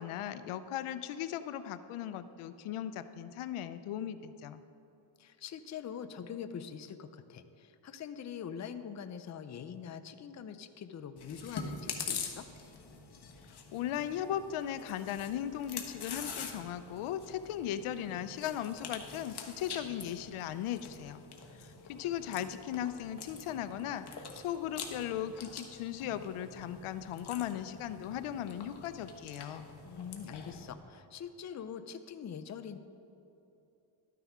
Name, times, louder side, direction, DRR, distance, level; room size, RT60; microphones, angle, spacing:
voice 1, 0.0-4.6 13.7-21.2 21.6-29.7, left 10 dB, 85° left, 12 dB, 0.6 m, -37 dB
voice 2, 5.2-12.5 29.9-32.8, left 7 dB, 35° left, 9 dB, 0.5 m, -44 dB
Chewing mastication, 11.2-30.7, left 5 dB, 50° left, 1.3 m, -45 dB
13.0 x 9.3 x 3.6 m, 2.9 s
cardioid pair, 110°, 49 cm